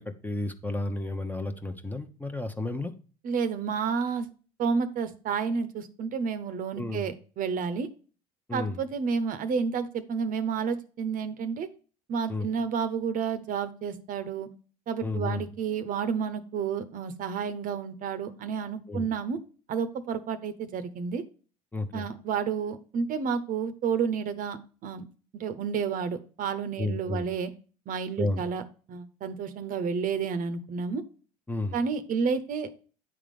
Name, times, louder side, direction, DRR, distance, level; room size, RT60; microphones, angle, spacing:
voice 1, 0.0-2.9 6.8-7.1 8.5-8.8 12.3-12.5 15.0-15.4 18.9-19.1 21.7-22.1 26.8-27.2 28.2-28.4 31.5-31.8, left 2 dB, 10° left, 7 dB, 0.9 m, -32 dB
voice 2, 3.2-4.3 4.6-7.9 8.5-11.7 12.1-14.5 14.9-19.4 19.7-21.2 21.9-25.1 25.3-27.5 27.9-28.6 28.9-31.0 31.7-32.7, right 6 dB, 50° right, 11 dB, 0.8 m, -30 dB
9.1 x 3.7 x 5.1 m, 0.38 s
supercardioid pair, 85°, 19 cm